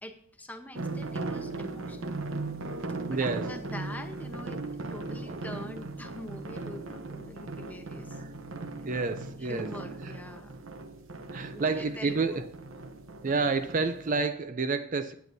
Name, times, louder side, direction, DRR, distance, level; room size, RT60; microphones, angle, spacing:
voice 1, 0.0-2.2 3.1-4.6 4.9-8.2 9.4-10.7 11.5-12.4, left 1 dB, 10° left, 6 dB, 0.8 m, -44 dB
sound 1, 0.8-14.3, right 3 dB, 70° right, 0.8 m, -38 dB
voice 2, 3.1-3.5 5.3-5.5 8.8-9.7 11.3-12.5 13.2-15.1, right 4 dB, 40° right, 10 dB, 0.4 m, -29 dB
15.0 x 9.1 x 2.7 m, 0.64 s
head